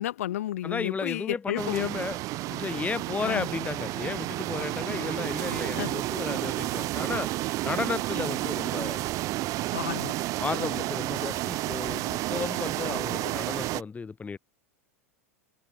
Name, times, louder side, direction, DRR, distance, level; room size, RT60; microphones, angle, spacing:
voice 1, 0.0-1.9 3.2-3.5 5.7-5.9 9.7-10.1, left 13 dB, 70° left, 4.5 m, -32 dB
voice 2, 0.6-2.2 2.5-7.3 7.6-9.1 9.3-9.5 10.4-14.4, left 5 dB, 20° left, 6.6 m, -33 dB
sound 1, 1.6-13.8, right 18 dB, 45° right, 1.0 m, -31 dB
hypercardioid pair, 90°, 8 cm